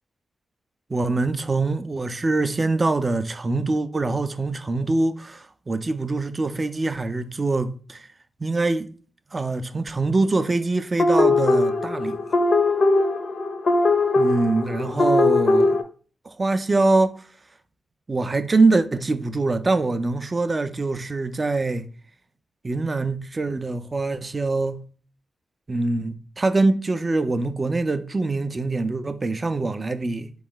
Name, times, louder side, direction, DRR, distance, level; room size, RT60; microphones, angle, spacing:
voice 1, 0.9-8.1 8.4-8.9 9.3-12.2 14.2-15.8 16.3-17.2 18.1-21.8 22.6-24.8 25.7-30.3, right 3 dB, 25° right, 0.3 m, -24 dB
sound 1, 11.0-15.8, left 2 dB, 45° left, 0.5 m, -20 dB
4.2 x 3.0 x 3.8 m
wide cardioid pair, 155°, 0 cm